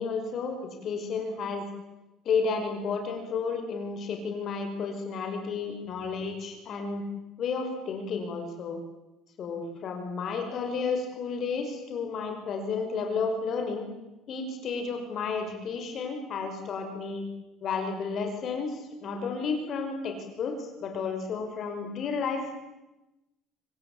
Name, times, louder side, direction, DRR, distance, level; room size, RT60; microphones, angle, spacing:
voice 1, 0.0-1.7 2.3-7.0 7.4-8.8 9.4-13.9 14.3-17.3 17.6-22.4, left 5 dB, 40° left, 4 dB, 5.5 m, -32 dB
27.0 x 25.0 x 8.8 m, 1.0 s
cardioid pair, 160°, 0 cm